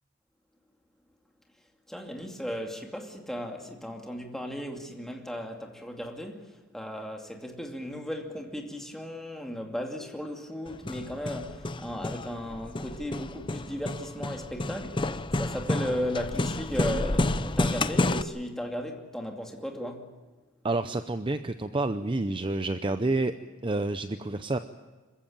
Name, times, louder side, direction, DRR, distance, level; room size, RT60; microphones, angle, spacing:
voice 1, 1.9-20.1, equal, ahead, 2.5 m, -36 dB
Hammer, 10.7-18.2, left 2 dB, 25° left, 0.6 m, -30 dB
voice 2, 20.6-23.3 23.6-24.6, right 2 dB, 25° right, 0.6 m, -29 dB
26.5 x 15.0 x 8.8 m
head